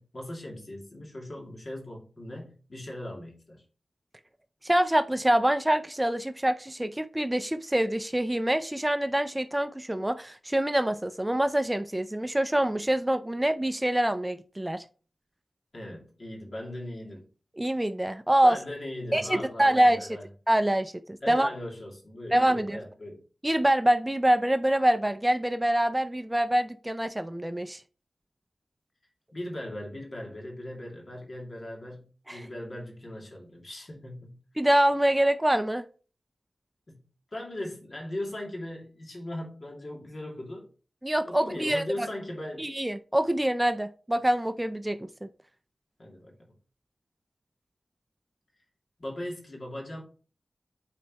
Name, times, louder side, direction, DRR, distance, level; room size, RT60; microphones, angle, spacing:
voice 1, 0.0-3.6 15.7-17.3 18.4-20.3 21.2-23.2 29.3-34.4 36.9-37.0 37.3-40.7 41.2-42.7 46.0-46.3 49.0-50.0, left 1 dB, 55° left, -1 dB, 2.5 m, -39 dB
voice 2, 4.6-14.8 17.6-18.6 19.1-20.1 20.5-21.5 22.3-22.8 23.4-27.8 32.3-32.4 34.6-35.8 41.0-41.8 42.6-45.3, right 1 dB, 15° right, 10 dB, 0.4 m, -25 dB
9.0 x 4.3 x 2.9 m, 0.38 s
wide cardioid pair, 90°, 0 cm